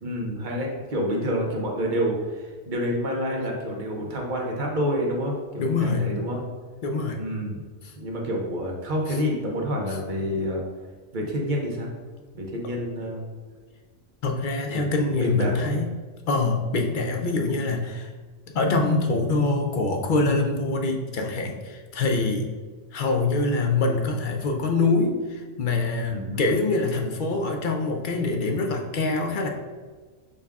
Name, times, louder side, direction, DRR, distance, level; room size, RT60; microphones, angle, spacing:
voice 1, 0.0-6.4 7.2-7.6 7.9-10.6 11.1-11.9 12.3-13.2 14.7-15.7 26.1-26.5, equal, 45° right, -1 dB, 0.9 m, -28 dB
voice 2, 5.6-6.1 6.8-7.2 14.2-15.9 16.3-18.1 18.5-22.4 22.9-29.5, left 3 dB, 55° left, 3 dB, 0.7 m, -24 dB
6.5 x 2.3 x 3.5 m, 1.4 s
omnidirectional pair, 1.2 m